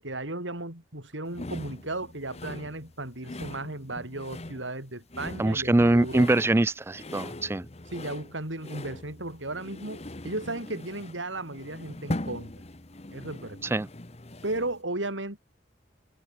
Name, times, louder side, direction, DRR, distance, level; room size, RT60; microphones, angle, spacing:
voice 1, 0.0-6.3 7.9-12.5 13.1-13.7 14.4-15.4, right 2 dB, 85° right, 5.6 m, -35 dB
sound 1, 1.3-14.8, left 1 dB, 35° left, 1.4 m, -41 dB
voice 2, 5.4-7.7 13.7-13.9, right 2 dB, 15° right, 0.3 m, -23 dB
head